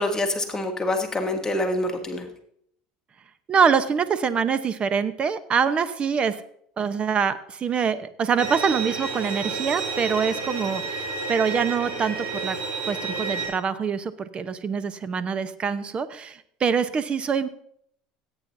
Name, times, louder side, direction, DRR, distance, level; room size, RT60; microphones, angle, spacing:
voice 1, 0.0-2.3, left 1 dB, 20° left, 3 dB, 1.6 m, -26 dB
voice 2, 3.5-6.4 6.8-12.6 12.8-17.5, right 6 dB, 35° right, 13 dB, 0.9 m, -25 dB
Bowed string instrument, 8.4-13.5, right 4 dB, 55° right, 3.7 m, -30 dB
17.0 x 8.9 x 2.7 m, 0.67 s
supercardioid pair, 100°, 3 cm